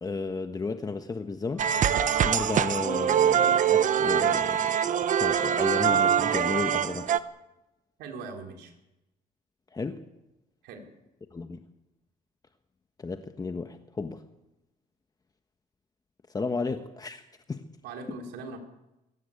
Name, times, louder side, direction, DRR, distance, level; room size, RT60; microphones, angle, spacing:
voice 1, 0.0-2.0 2.2-4.8 5.2-7.1 9.7-10.0 11.3-11.6 13.0-14.2 16.3-17.2 17.5-17.6 18.1-18.2, left 4 dB, 20° left, 7 dB, 1.3 m, -33 dB
sound 1, 1.5-3.3, left 1 dB, 5° left, 2.9 m, -41 dB
sound 2, 1.6-7.2, right 9 dB, 50° right, 1.1 m, -24 dB
voice 2, 8.0-8.7 10.6-10.8 16.4-16.5 17.8-18.6, right 4 dB, 85° right, 3 dB, 4.0 m, -40 dB
23.5 x 17.0 x 8.5 m, 0.94 s
cardioid pair, 110°, 17 cm